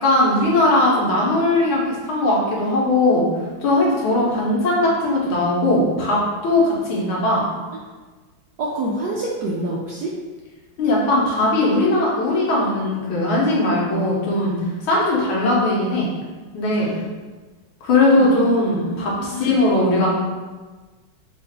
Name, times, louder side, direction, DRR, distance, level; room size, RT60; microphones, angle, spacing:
voice 1, 0.0-1.8 2.1-3.3 3.6-7.5 10.8-14.5 14.8-16.1 16.5-16.9 17.8-20.1, left 2 dB, 80° left, -4 dB, 1.8 m, -19 dB
voice 2, 8.6-10.1 16.8-16.9 18.1-18.4 19.1-19.6, right 2 dB, 80° right, -4 dB, 0.8 m, -27 dB
3.9 x 2.4 x 4.4 m, 1.3 s
omnidirectional pair, 2.3 m